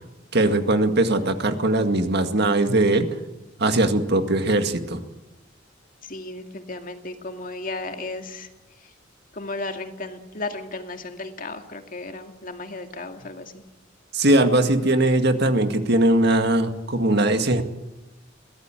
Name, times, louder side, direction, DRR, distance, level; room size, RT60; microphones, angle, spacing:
voice 1, 0.3-3.1 3.6-5.0 14.1-17.6, right 1 dB, 55° right, 7 dB, 2.0 m, -20 dB
voice 2, 6.0-8.5 8.8-8.9 9.3-13.6, left 2 dB, 45° left, 5 dB, 2.3 m, -34 dB
23.5 x 17.0 x 9.0 m, 1.0 s
head